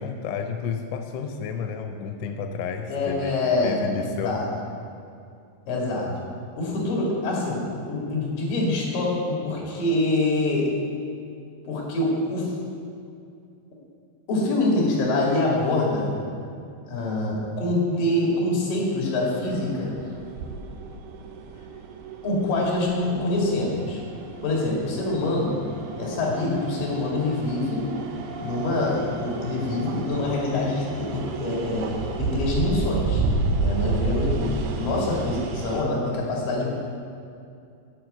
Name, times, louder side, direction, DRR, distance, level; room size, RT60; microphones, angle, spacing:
voice 1, 0.0-3.4 3.6-4.4, left 6 dB, 90° left, 5 dB, 3.0 m, -31 dB
voice 2, 2.9-4.5 5.7-6.1 6.6-10.7 11.7-12.5 14.3-16.1 16.9-19.9 22.2-24.0 24.4-25.6 26.0-27.8 28.4-31.9 32.2-33.2 33.6-36.7, left 2 dB, 55° left, -3 dB, 3.7 m, -25 dB
sound 1, 19.4-35.8, right 3 dB, 75° right, 2.2 m, -31 dB
8.8 x 7.9 x 7.8 m, 2.5 s
omnidirectional pair, 5.1 m